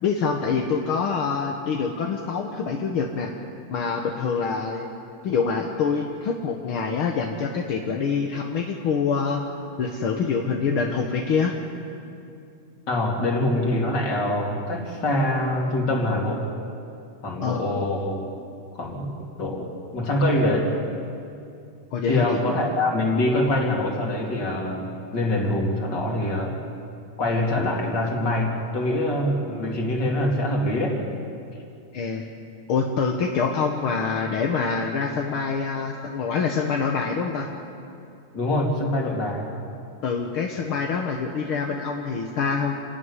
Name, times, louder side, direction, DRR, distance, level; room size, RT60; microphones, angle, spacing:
voice 1, 0.0-3.3 3.7-4.9 5.2-9.4 9.8-11.5 17.4-17.6 21.9-22.3 31.9-32.3 32.7-37.5 40.0-42.8, left 5 dB, 55° left, 2 dB, 1.7 m, -25 dB
voice 2, 12.9-16.5 17.2-18.2 18.7-20.8 22.1-26.6 27.2-31.0 38.3-39.5, left 1 dB, 35° left, 0 dB, 3.3 m, -24 dB
28.5 x 12.5 x 9.8 m, 2.6 s
omnidirectional pair, 3.6 m